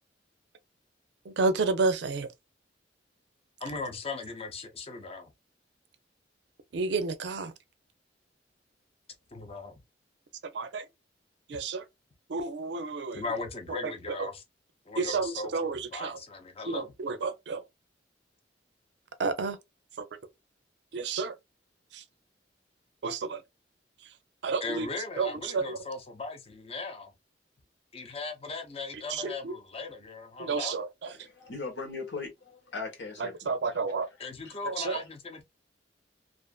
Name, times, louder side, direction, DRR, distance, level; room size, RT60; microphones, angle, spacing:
voice 1, 1.3-2.3 6.7-7.5 10.5-10.8 11.5-11.8 12.3-13.2 14.2-14.3 15.0-16.2 16.7-17.6 19.2-19.6 20.9-21.3 21.9-22.0 23.0-23.4 24.4-24.9 25.2-25.8 29.1-29.5 30.4-31.1 33.2-34.1 34.6-35.0, right 4 dB, 65° right, 0.5 m, -30 dB
voice 2, 3.6-5.3 9.3-9.8 13.1-14.4 14.9-16.9 24.6-27.1 27.9-30.7 34.2-35.4, left 3 dB, 35° left, 0.6 m, -38 dB
voice 3, 31.0-33.5 34.2-34.5, left 4 dB, 75° left, 1.2 m, -39 dB
2.5 x 2.5 x 2.3 m
head